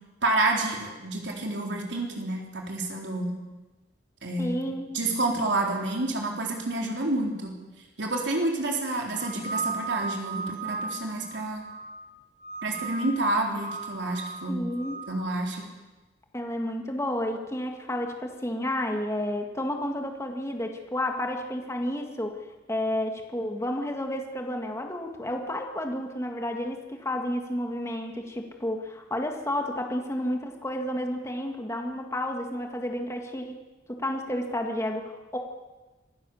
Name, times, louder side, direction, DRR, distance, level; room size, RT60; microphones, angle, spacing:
voice 1, 0.2-3.3 4.2-4.5 4.9-7.5 8.0-11.6 12.6-14.6 15.1-15.7, right 2 dB, 70° right, 0 dB, 3.8 m, -29 dB
voice 2, 4.4-4.9 14.5-15.0 16.3-22.3 22.7-33.6 33.9-35.4, left 1 dB, 15° left, 3 dB, 1.8 m, -31 dB
sound 1, 9.1-12.0 12.4-13.2 13.5-15.1, right 4 dB, 65° left, 3.0 m, -36 dB
25.5 x 16.5 x 7.1 m, 1.2 s
head